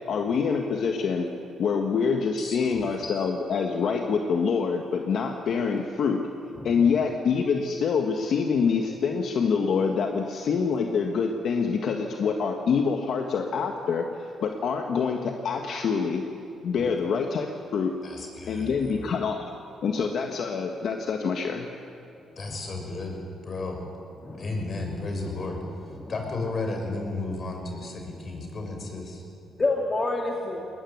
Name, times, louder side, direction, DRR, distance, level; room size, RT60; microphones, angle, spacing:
voice 1, 0.0-1.3 1.6-6.2 6.6-16.2 16.6-17.5 17.7-17.9 18.5-19.5 19.8-21.7, left 5 dB, 65° left, 3 dB, 1.6 m, -26 dB
voice 2, 2.4-2.7 18.0-19.1 22.4-23.2 23.4-23.8 24.4-25.6 26.1-29.2, left 2 dB, 45° left, 3 dB, 5.8 m, -33 dB
voice 3, 6.6-6.9 16.8-17.0 22.3-22.6 24.2-24.6 26.0-26.1 29.5-30.7, left 2 dB, 30° left, 0 dB, 2.4 m, -29 dB
21.0 x 20.0 x 9.4 m, 2.7 s
cardioid pair, 90°, 0 cm